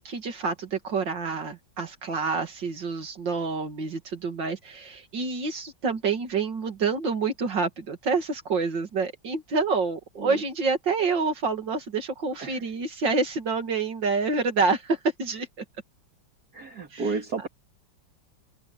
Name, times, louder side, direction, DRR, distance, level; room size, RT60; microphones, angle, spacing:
voice 1, 0.0-15.6 16.9-17.2, right 4 dB, 70° right, 3.1 m, -27 dB
voice 2, 16.5-17.5, right 4 dB, 55° right, 3.0 m, -32 dB
open air
omnidirectional pair, 2.0 m